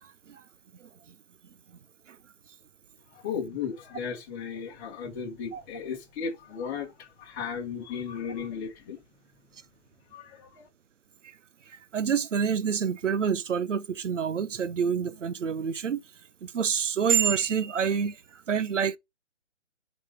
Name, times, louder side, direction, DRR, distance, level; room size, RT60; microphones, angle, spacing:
voice 1, 3.1-9.0 10.1-10.7, left 6 dB, 15° left, 1.4 m, -35 dB
voice 2, 11.7-16.0 16.4-19.0, right 7 dB, 85° right, 0.8 m, -27 dB
7.5 x 4.1 x 4.9 m
hypercardioid pair, 160°, 36 cm